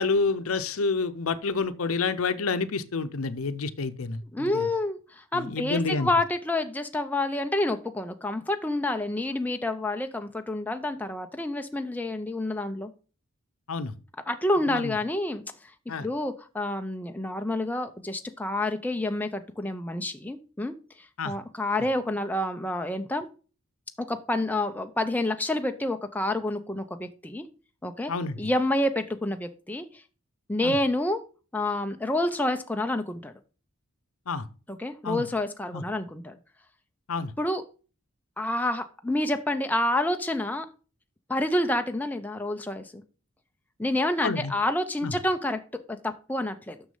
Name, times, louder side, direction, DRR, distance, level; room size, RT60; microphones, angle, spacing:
voice 1, 0.0-4.7 5.3-6.1 13.7-14.0 14.7-14.9 15.9-16.1 21.2-21.4 28.1-28.4 30.6-30.8 34.3-34.5 35.0-35.2 35.7-35.8 37.1-37.3 44.2-44.5 45.0-45.1, left 4 dB, 75° left, 0.6 m, -28 dB
voice 2, 4.3-12.9 14.3-15.7 16.0-23.3 24.1-27.5 27.8-28.1 28.4-30.0 30.5-31.2 31.5-33.3 34.7-36.4 37.4-37.6 38.4-40.7 41.3-43.0 43.8-45.6 45.9-46.8, left 1 dB, 10° left, 0.5 m, -28 dB
6.3 x 6.3 x 5.5 m
head